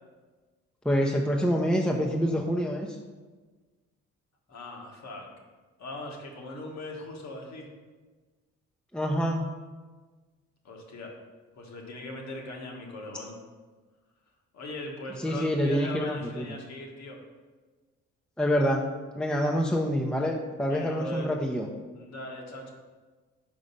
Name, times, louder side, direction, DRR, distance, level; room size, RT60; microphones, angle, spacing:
voice 1, 0.8-3.0 8.9-9.5 15.2-16.4 18.4-18.8 19.2-21.7, equal, 5° left, 0 dB, 0.6 m, -26 dB
voice 2, 4.5-5.3 5.8-7.7 10.6-11.1 11.5-13.4 14.5-17.2 20.6-21.3 21.9-22.7, left 1 dB, 60° left, 1 dB, 1.5 m, -39 dB
5.2 x 4.8 x 5.4 m, 1.3 s
cardioid pair, 90°, 30 cm